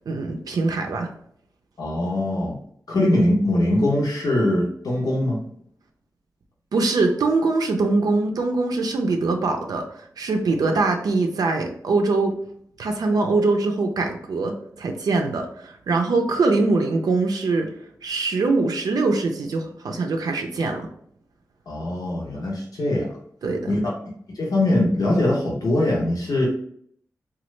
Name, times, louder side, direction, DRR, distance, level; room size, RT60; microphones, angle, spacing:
voice 1, 0.1-1.1 6.7-9.8 10.2-12.4 12.8-17.7 18.0-20.9 23.4-23.6, right 3 dB, 90° right, 3 dB, 0.4 m, -22 dB
voice 2, 1.8-2.6 2.9-5.4 21.7-23.1 23.7-23.8 24.3-26.5, left 1 dB, 75° left, -4 dB, 0.7 m, -22 dB
3.0 x 2.3 x 3.1 m, 0.65 s
cardioid pair, 60°, 6 cm